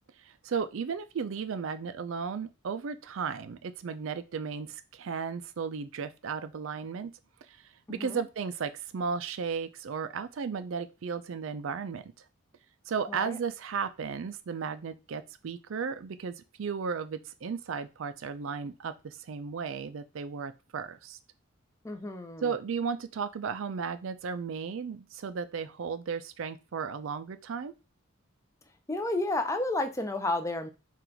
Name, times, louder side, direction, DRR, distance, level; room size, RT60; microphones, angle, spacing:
voice 1, 0.4-7.1 7.9-12.1 12.9-21.2 22.4-27.7, right 6 dB, 65° right, 12 dB, 0.4 m, -35 dB
voice 2, 21.8-22.5 28.9-30.7, left 2 dB, 15° left, 7 dB, 0.5 m, -31 dB
3.8 x 2.5 x 4.4 m, 0.29 s
head